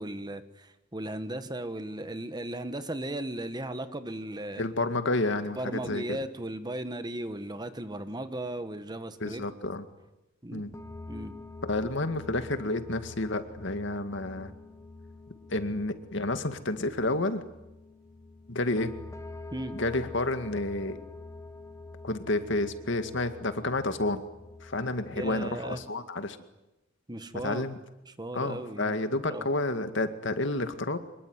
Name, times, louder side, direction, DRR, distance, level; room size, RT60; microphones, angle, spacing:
voice 1, 0.0-4.6 5.5-9.4 10.4-10.6 11.1-11.3 19.5-19.7 25.1-25.8 27.1-27.7 28.1-29.0 29.2-29.5, right 1 dB, 20° right, 10 dB, 1.4 m, -36 dB
voice 2, 4.6-6.2 9.2-9.8 10.5-10.7 11.6-14.5 15.5-17.4 18.5-18.9 19.8-21.0 22.0-24.2 24.6-26.4 27.4-27.8 28.3-31.0, left 2 dB, 65° left, 9 dB, 2.1 m, -30 dB
sound 1, 10.7-25.9, left 2 dB, 15° left, 1.1 m, -46 dB
25.0 x 22.0 x 9.6 m, 0.94 s
head